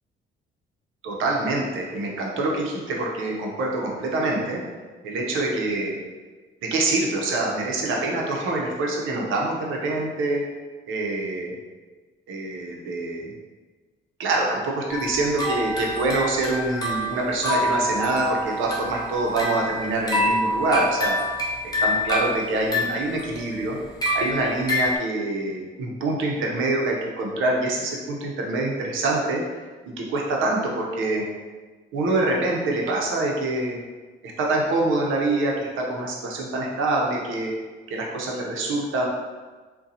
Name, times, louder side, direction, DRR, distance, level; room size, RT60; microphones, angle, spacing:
voice 1, 1.0-4.6 5.0-6.0 6.7-10.4 10.9-11.5 12.3-13.3 14.2-21.2 21.6-23.8 24.1-29.4 30.0-31.2 31.9-33.8 34.2-37.5 37.9-39.1, right 2 dB, 80° right, -1 dB, 0.7 m, -25 dB
sound 1, 14.9-25.0, left 1 dB, 20° left, 0.8 m, -27 dB
3.8 x 2.2 x 2.7 m, 1.3 s
cardioid pair, 90°, 20 cm